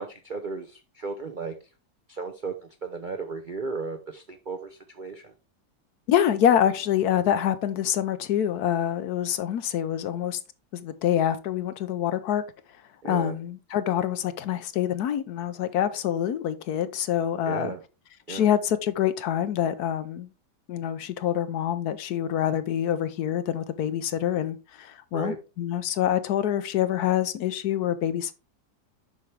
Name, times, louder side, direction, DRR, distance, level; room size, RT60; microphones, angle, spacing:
voice 1, 0.0-1.5 2.1-5.3 13.0-13.4 17.4-17.8 18.3-18.5 25.1-25.4, right 4 dB, 55° right, 0.5 m, -35 dB
voice 2, 6.1-10.4 10.7-12.4 13.0-17.7 18.3-20.3 20.7-28.3, left 10 dB, 70° left, 1.1 m, -26 dB
7.3 x 5.9 x 3.3 m
omnidirectional pair, 1.8 m